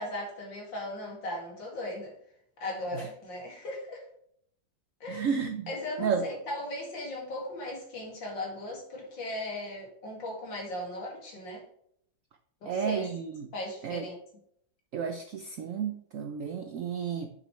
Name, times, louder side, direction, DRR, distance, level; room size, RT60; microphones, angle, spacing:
voice 1, 0.0-2.1 2.6-4.0 5.0-5.3 5.7-11.6 12.6-13.1 13.5-14.2, left 1 dB, 65° left, -1 dB, 3.0 m, -37 dB
voice 2, 5.1-5.7 6.0-6.2 12.6-13.5 13.8-14.1 14.9-17.3, right 6 dB, 75° right, 5 dB, 0.7 m, -32 dB
8.6 x 6.5 x 3.2 m, 0.69 s
omnidirectional pair, 2.2 m